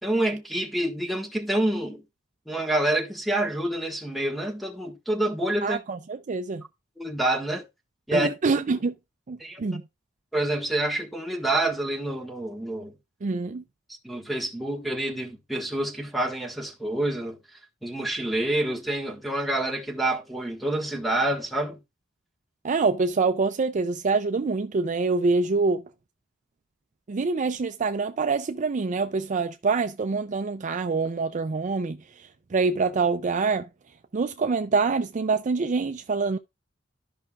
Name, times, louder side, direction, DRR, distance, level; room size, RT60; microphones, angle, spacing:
voice 1, 0.0-2.0 2.5-5.8 7.0-7.6 8.1-8.3 9.4-9.8 10.3-12.9 14.0-17.4 17.8-21.8, right 1 dB, ahead, 1.5 m, -27 dB
voice 2, 5.6-6.6 8.1-8.9 9.3-9.8 13.2-13.6 22.6-25.8 27.1-33.7 34.1-36.4, right 4 dB, 40° right, 0.4 m, -25 dB
13.0 x 5.6 x 2.4 m
head